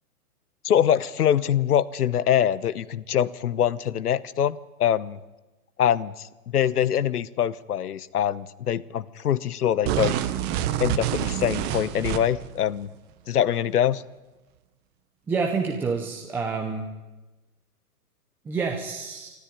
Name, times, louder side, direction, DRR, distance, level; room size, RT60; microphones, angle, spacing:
voice 1, 0.6-5.2 5.8-10.2 10.8-12.9 13.3-14.0, left 10 dB, 75° left, 18 dB, 1.1 m, -24 dB
sound 1, 9.8-12.5, right 12 dB, 20° right, 1.1 m, -27 dB
voice 2, 15.3-16.9 18.4-19.3, right 5 dB, 5° right, 1 dB, 0.6 m, -28 dB
24.0 x 13.5 x 9.1 m, 1.1 s
hypercardioid pair, 145°, 46 cm